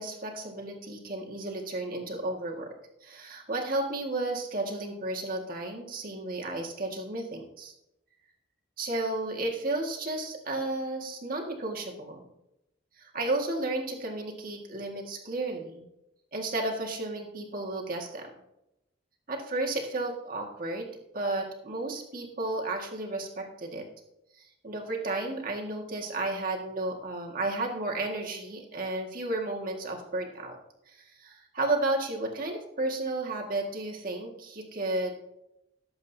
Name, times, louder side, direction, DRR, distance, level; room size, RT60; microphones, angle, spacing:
voice 1, 0.0-2.8 3.0-7.7 8.8-12.3 13.0-15.9 16.3-18.3 19.3-20.9 21.1-23.9 24.4-30.6 30.9-35.2, right 2 dB, 45° right, 1 dB, 1.8 m, -33 dB
18.0 x 7.9 x 2.8 m, 0.88 s
head